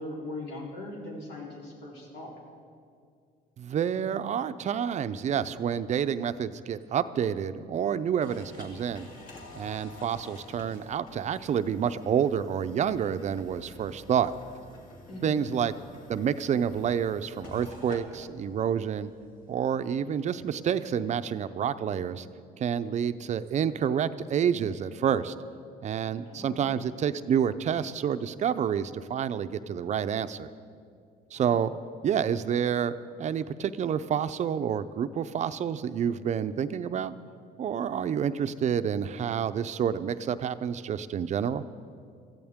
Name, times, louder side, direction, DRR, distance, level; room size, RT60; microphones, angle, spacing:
voice 1, 0.0-2.4 15.1-15.4 26.2-26.7 31.3-31.5, left 2 dB, 85° left, -4 dB, 3.5 m, -40 dB
voice 2, 3.6-9.1 9.5-14.3 15.2-15.7 16.1-19.1 19.5-22.3 22.6-25.3 25.8-30.5 31.3-31.7 32.0-32.9 33.2-37.1 37.6-41.6, right 8 dB, 45° right, 11 dB, 0.5 m, -28 dB
sound 1, 8.2-19.9, left 1 dB, 50° left, 2.6 m, -49 dB
20.0 x 14.0 x 3.6 m, 2.3 s
cardioid pair, 110°, 17 cm